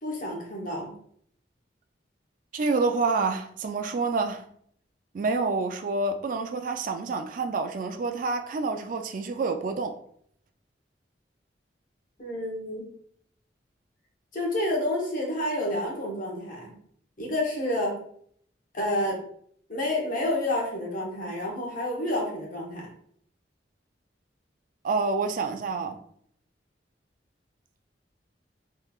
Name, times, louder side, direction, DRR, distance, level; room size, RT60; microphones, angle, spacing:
voice 1, 0.0-0.9 12.2-12.8 14.3-16.7 17.2-18.0 18.7-19.2 19.7-22.9, left 1 dB, 50° left, 1.0 m, -29 dB
voice 2, 2.5-4.5 5.1-10.0 24.8-26.0, right 4 dB, 50° right, 0.3 m, -28 dB
3.6 x 3.2 x 2.3 m
head